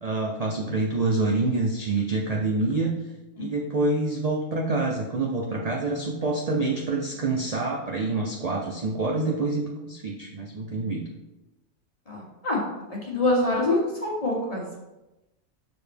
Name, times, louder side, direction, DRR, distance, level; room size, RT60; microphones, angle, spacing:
voice 1, 0.0-2.9 3.4-11.0, right 3 dB, 60° right, 0 dB, 0.4 m, -26 dB
voice 2, 12.1-12.6 13.0-14.6, left 2 dB, 25° left, -3 dB, 1.4 m, -25 dB
6.5 x 4.2 x 3.4 m, 1.0 s
omnidirectional pair, 1.4 m